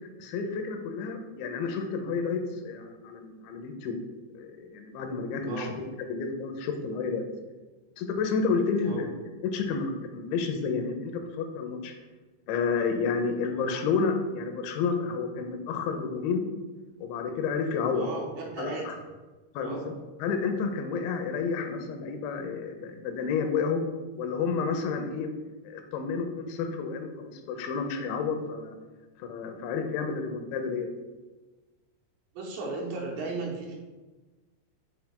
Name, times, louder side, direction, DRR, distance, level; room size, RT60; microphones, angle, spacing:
voice 1, 0.2-4.0 4.3-7.3 8.0-9.1 9.4-12.0 12.5-16.4 17.0-18.1 18.6-18.9 19.5-19.9 20.2-23.8 24.2-25.3 25.7-28.7 29.2-30.9, left 5 dB, 85° left, 5 dB, 3.1 m, -30 dB
voice 2, 18.0-18.9 19.6-19.9 32.3-33.8, right 3 dB, 80° right, -2 dB, 3.2 m, -35 dB
9.0 x 5.7 x 2.2 m, 1.2 s
omnidirectional pair, 5.2 m